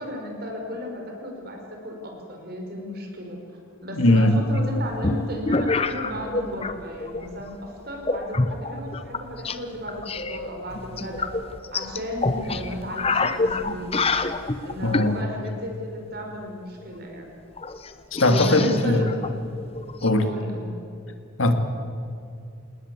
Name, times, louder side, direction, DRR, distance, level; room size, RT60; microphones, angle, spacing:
voice 1, 0.0-11.3 11.7-14.0 14.6-17.3 18.2-19.3 20.2-20.7, equal, 50° right, 2 dB, 5.4 m, -34 dB
voice 2, 3.9-4.4 14.8-15.2 18.2-19.0 20.0-20.3 21.4-21.5, left 2 dB, 80° left, 6 dB, 2.4 m, -19 dB
sound 1, 4.6-6.7 7.0-7.5 8.0-9.6 9.9-15.1 16.8-16.9 17.1-17.2 17.6-20.1, left 3 dB, 30° left, 0.9 m, -27 dB
28.0 x 19.0 x 8.4 m, 2.5 s
head